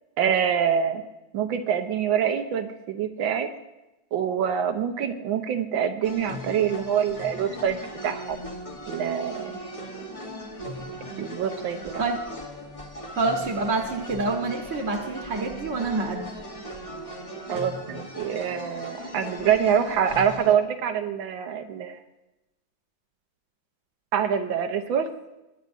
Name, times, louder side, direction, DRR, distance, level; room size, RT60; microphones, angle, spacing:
voice 1, 0.2-1.0 1.3-3.5 4.1-8.4 8.9-9.5 11.2-11.9 17.5-22.0 24.1-25.1, right 8 dB, 90° right, 7 dB, 1.6 m, -25 dB
sound 1, 6.0-20.5, equal, 25° left, 0.9 m, -38 dB
voice 2, 13.1-16.2, right 3 dB, 45° right, 1 dB, 1.3 m, -27 dB
20.5 x 9.4 x 2.6 m, 0.98 s
omnidirectional pair, 2.1 m